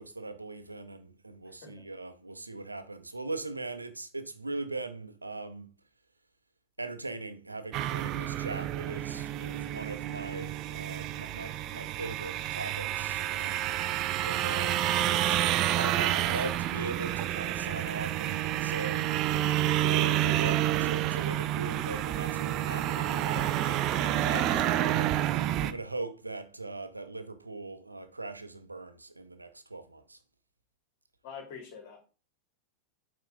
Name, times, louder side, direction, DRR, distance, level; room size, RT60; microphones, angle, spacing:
voice 1, 0.0-5.7 6.8-13.7 14.2-15.4 15.8-19.1 19.9-25.1 25.6-30.2, right 3 dB, 80° right, 0.9 m, -40 dB
voice 2, 1.4-1.8 23.1-23.8 24.5-24.8 31.2-32.0, left 6 dB, 50° left, 2.8 m, -46 dB
sound 1, 7.7-25.7, right 13 dB, 35° right, 0.6 m, -29 dB
8.1 x 4.1 x 5.0 m
figure-of-eight pair, 90°, 0 cm